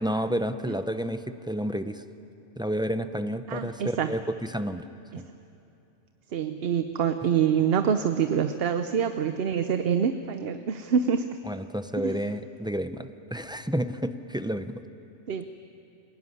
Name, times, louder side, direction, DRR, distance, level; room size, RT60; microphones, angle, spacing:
voice 1, 0.0-2.0 2.6-4.9 5.2-5.3 11.5-14.8, equal, 5° right, 9 dB, 0.3 m, -30 dB
voice 2, 3.5-4.2 5.1-5.2 6.3-11.3 12.0-12.2 15.3-15.5, right 7 dB, 55° right, 9 dB, 0.9 m, -26 dB
26.0 x 17.0 x 9.7 m, 2.8 s
omnidirectional pair, 1.3 m